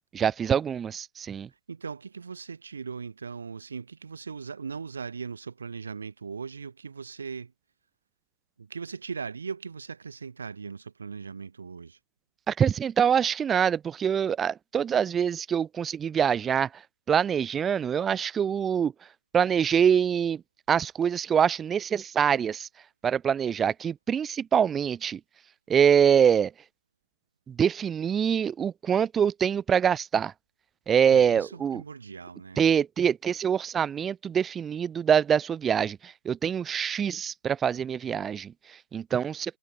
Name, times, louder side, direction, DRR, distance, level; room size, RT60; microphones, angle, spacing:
voice 1, 0.1-1.5 12.5-16.8 17.1-18.9 19.3-20.4 20.7-22.7 23.0-25.2 25.7-26.5 27.5-30.3 30.9-31.8 32.6-39.6, right 8 dB, 10° right, 0.5 m, -25 dB
voice 2, 1.5-7.5 8.6-12.0 31.1-32.6, right 5 dB, 55° right, 5.4 m, -39 dB
figure-of-eight pair, 155°, 0 cm